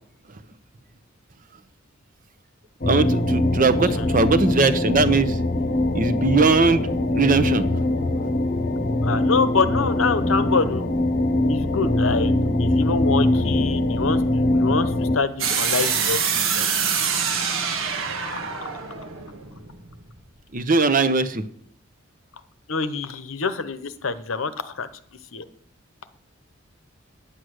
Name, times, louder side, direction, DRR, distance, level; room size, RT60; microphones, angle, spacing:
sound 1, 2.8-15.2, left 1 dB, 45° left, 0.9 m, -22 dB
voice 1, 2.8-5.4 5.9-6.8 7.1-7.8 20.5-21.4, right 3 dB, 40° right, 11 dB, 0.8 m, -20 dB
voice 2, 9.0-10.9 11.5-12.3 12.6-16.7 18.2-18.4 22.7-24.9 25.3-25.4, left 4 dB, 85° left, 12 dB, 0.9 m, -26 dB
sound 2, 15.4-20.2, right 6 dB, 90° right, 1.5 m, -25 dB
10.0 x 8.0 x 6.4 m, 0.64 s
head